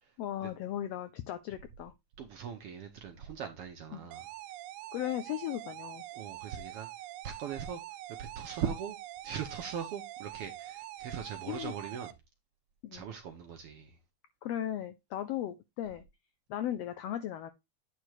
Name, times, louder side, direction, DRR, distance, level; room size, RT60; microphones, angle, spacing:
voice 1, 0.2-1.9 3.9-4.0 4.9-6.0 11.5-11.7 12.8-13.0 14.4-16.0 16.5-17.5, left 11 dB, 80° left, 1.4 m, -36 dB
voice 2, 2.2-4.3 6.1-6.9 7.2-7.8 8.2-9.0 9.2-12.1 12.9-14.0, right 8 dB, 65° right, 1.5 m, -40 dB
sound 1, 4.1-12.1, right 14 dB, 85° right, 2.0 m, -45 dB
9.2 x 3.3 x 4.8 m
omnidirectional pair, 3.4 m